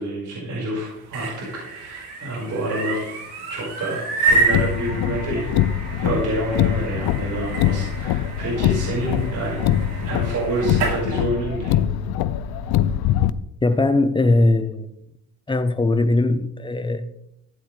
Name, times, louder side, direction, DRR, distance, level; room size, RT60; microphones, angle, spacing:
voice 1, 0.0-3.0 3.5-5.4 6.0-9.6 10.0-11.7, right 1 dB, 50° right, 5.4 m, -28 dB
sound 1, 0.9-11.0, right 3 dB, 85° right, 3.5 m, -28 dB
Car, 4.3-13.3, left 11 dB, 75° left, 0.6 m, -23 dB
voice 2, 13.6-14.9 15.5-17.1, left 2 dB, 15° left, 0.8 m, -20 dB
15.0 x 10.0 x 3.3 m
cardioid pair, 115°, 38 cm